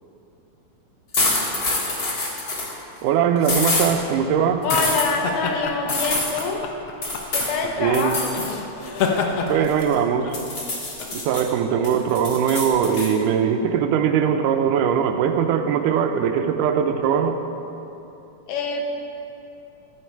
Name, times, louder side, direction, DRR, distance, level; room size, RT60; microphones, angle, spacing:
sound 1, 1.1-2.7 3.4-3.9 4.7-5.1 5.9-6.4 7.0-7.5 7.9-8.5 8.8-9.9 10.3-11.4 11.8-13.1, left 2 dB, 40° left, 1.6 m, -25 dB
voice 1, 3.0-4.7 7.8-8.1 9.5-10.4 11.1-17.4, right 8 dB, 85° right, 7 dB, 2.3 m, -21 dB
sound 2, 4.0-12.8, left 5 dB, 70° left, 1.5 m, -30 dB
voice 2, 4.6-6.6 7.3-8.4 18.5-18.8, left 4 dB, 90° left, 2 dB, 2.7 m, -25 dB
14.0 x 9.2 x 4.6 m, 2.9 s
omnidirectional pair, 3.6 m